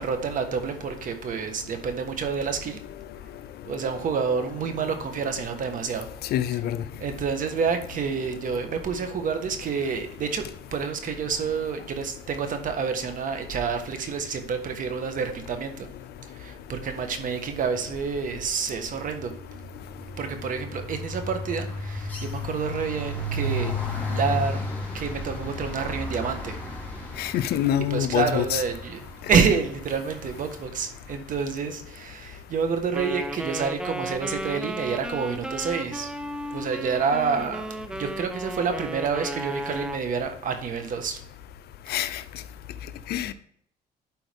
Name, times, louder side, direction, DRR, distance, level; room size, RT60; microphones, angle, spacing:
voice 1, 0.0-2.8 3.6-6.1 7.0-10.4 10.7-15.9 16.3-19.3 20.2-24.7 24.9-26.6 27.9-29.0 29.3-36.1 36.5-41.2, right 5 dB, 50° right, 1.4 m, -28 dB
voice 2, 6.3-6.8 27.2-28.6 41.9-42.2 43.1-43.3, left 11 dB, 70° left, 0.6 m, -25 dB
sound 1, 17.6-17.8 18.1-31.2, left 1 dB, 10° left, 2.8 m, -34 dB
Wind instrument woodwind instrument, 32.9-40.1, right 1 dB, 5° right, 0.5 m, -34 dB
12.0 x 4.5 x 3.5 m
cardioid pair, 110°, 17 cm